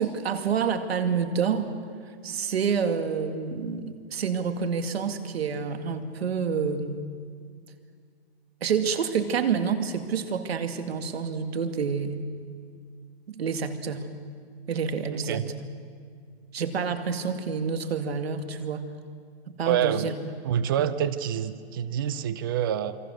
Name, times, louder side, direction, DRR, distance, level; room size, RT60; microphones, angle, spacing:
voice 1, 0.0-1.7 2.2-7.0 8.6-12.2 13.3-14.1 14.7-15.5 16.5-18.8 19.5-20.1 20.8-20.9, right 6 dB, 70° right, 8 dB, 2.2 m, -28 dB
voice 2, 15.1-15.5 19.6-20.1 20.4-23.0, right 10 dB, 20° right, 14 dB, 0.5 m, -27 dB
28.0 x 22.5 x 6.4 m, 2.1 s
hypercardioid pair, 165°, 32 cm